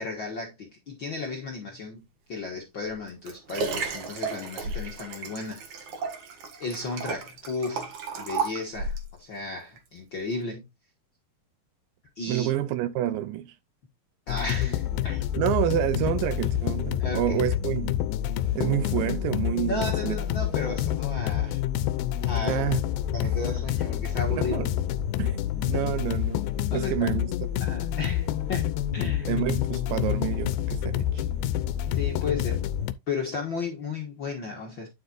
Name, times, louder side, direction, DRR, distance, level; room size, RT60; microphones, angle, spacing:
voice 1, 0.0-2.0 2.3-5.8 6.6-7.9 8.2-10.7 12.1-12.5 14.3-15.2 17.0-17.5 19.7-21.6 22.2-22.6 23.1-24.5 25.5-25.7 26.7-27.1 27.6-29.3 31.8-32.7 33.1-34.9, left 3 dB, 60° left, 1.3 m, -34 dB
Liquid, 2.9-9.1 9.8-9.9, right 4 dB, 55° right, 3.1 m, -33 dB
voice 2, 12.3-13.6 15.4-18.0 18.6-20.2 22.4-22.8 24.3-24.7 25.2-27.3 27.6-27.7 29.0-31.2, right 12 dB, 80° right, 2.2 m, -28 dB
sound 1, 14.3-32.9, left 11 dB, 85° left, 2.4 m, -28 dB
9.3 x 7.6 x 2.5 m
omnidirectional pair, 4.3 m